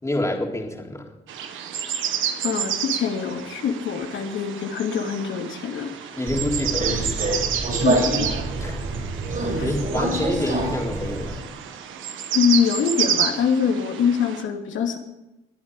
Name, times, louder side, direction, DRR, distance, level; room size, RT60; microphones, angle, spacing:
voice 1, 0.0-1.1 6.1-7.1 8.6-8.8 9.4-11.5, left 1 dB, 15° left, 0 dB, 3.5 m, -27 dB
sound 1, 1.3-14.4, right 8 dB, 80° right, 1.6 m, -30 dB
voice 2, 2.4-6.1 7.8-8.4 9.6-9.7 12.3-15.0, left 7 dB, 75° left, 3 dB, 2.4 m, -24 dB
Subway metro underground, 6.3-11.4, right 2 dB, 45° right, 6.1 m, -26 dB
22.0 x 8.7 x 4.9 m, 0.94 s
cardioid pair, 90°, 20 cm